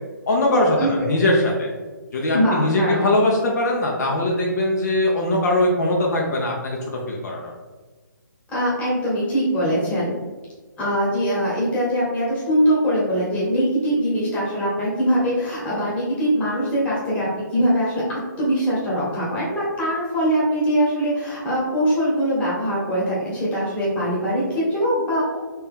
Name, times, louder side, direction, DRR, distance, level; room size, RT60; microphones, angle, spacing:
voice 1, 0.3-1.7 2.1-6.8 7.1-7.5, left 1 dB, 55° left, -1 dB, 0.7 m, -21 dB
voice 2, 2.3-3.1 8.5-10.1 10.8-25.4, equal, 10° left, -7 dB, 1.3 m, -22 dB
3.3 x 2.9 x 3.6 m, 1.3 s
hypercardioid pair, 150°, 11 cm